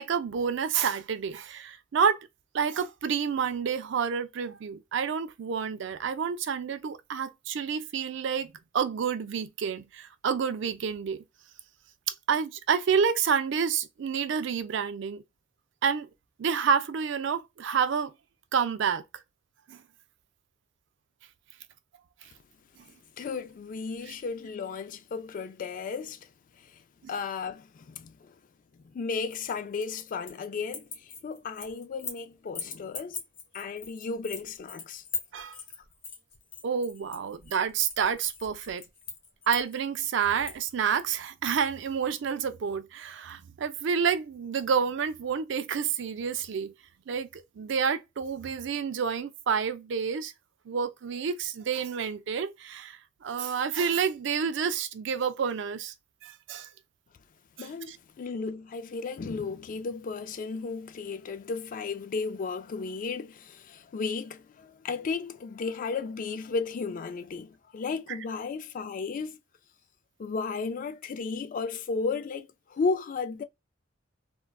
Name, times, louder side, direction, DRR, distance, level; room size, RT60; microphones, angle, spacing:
voice 1, 0.0-2.2 2.5-11.2 12.3-15.2 15.8-16.1 16.4-18.1 18.5-19.0 19.7-19.8 24.1-24.2 35.3-35.6 36.6-38.8 39.5-46.7 47.1-50.3 50.7-55.9 56.2-56.7 57.6-58.0, right 6 dB, 70° right, 0.4 m, -29 dB
voice 2, 23.2-26.3 26.6-26.8 27.1-28.3 28.9-33.2 33.5-35.0 57.6-69.4 70.2-73.4, left 4 dB, 45° left, 0.3 m, -34 dB
sound 1, 29.3-30.4 30.7-32.2 32.5-40.6, left 5 dB, 65° left, 1.3 m, -40 dB
3.6 x 2.2 x 2.2 m
head